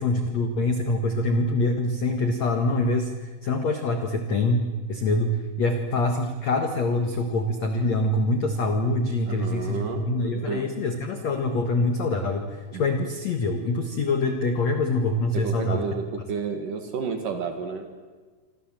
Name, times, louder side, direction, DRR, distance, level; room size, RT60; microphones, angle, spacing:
voice 1, 0.0-15.8, left 2 dB, 90° left, 5 dB, 1.5 m, -25 dB
voice 2, 9.3-10.1 10.5-10.7 12.7-12.8 15.3-18.0, right 5 dB, 55° right, 6 dB, 2.7 m, -31 dB
27.0 x 26.5 x 7.5 m, 1.4 s
omnidirectional pair, 5.7 m